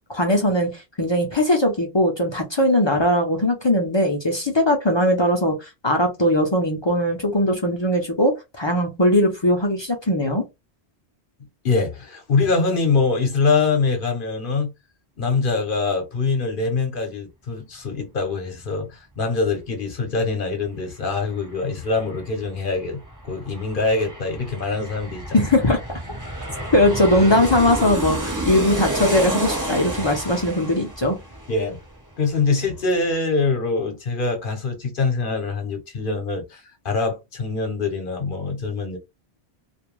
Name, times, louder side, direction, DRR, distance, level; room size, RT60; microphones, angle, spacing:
voice 1, 0.1-10.5 25.3-25.8 26.7-31.2, left 1 dB, 35° left, 0.4 m, -20 dB
voice 2, 11.6-14.7 15.2-25.4 31.5-31.8 32.2-39.0, left 4 dB, 55° left, 0.9 m, -24 dB
Aircraft, 20.6-20.7 21.0-32.3 32.6-32.7, right 1 dB, 20° right, 0.6 m, -30 dB
2.4 x 2.1 x 3.0 m
omnidirectional pair, 1.1 m